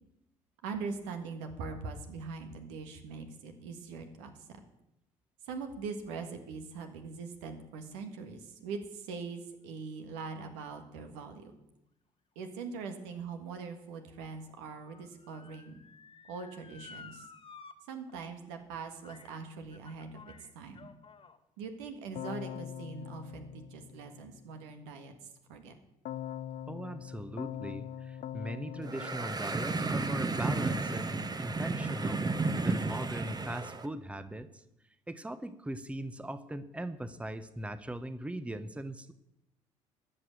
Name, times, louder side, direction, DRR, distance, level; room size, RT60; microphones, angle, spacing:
voice 1, 0.6-4.6 5.4-11.5 12.3-15.8 16.3-17.3 17.9-20.2 20.5-20.9 21.6-25.1 25.5-25.7, right 4 dB, 80° right, 6 dB, 1.6 m, -42 dB
Motor vehicle (road) / Siren, 12.5-17.7 18.1-18.2 19.0-19.4 19.7-21.4 22.1-22.2, left 5 dB, 35° left, 1.3 m, -54 dB
Keyboard (musical), 22.2-24.5 26.1-30.3, left 10 dB, 60° left, 0.7 m, -43 dB
voice 2, 26.7-34.6 35.1-39.1, right 1 dB, 10° right, 12 dB, 0.9 m, -40 dB
sound 1, 28.8-33.9, right 3 dB, 25° right, 1.1 m, -33 dB
12.5 x 6.0 x 8.4 m, 0.85 s
hypercardioid pair, 60°, 16 cm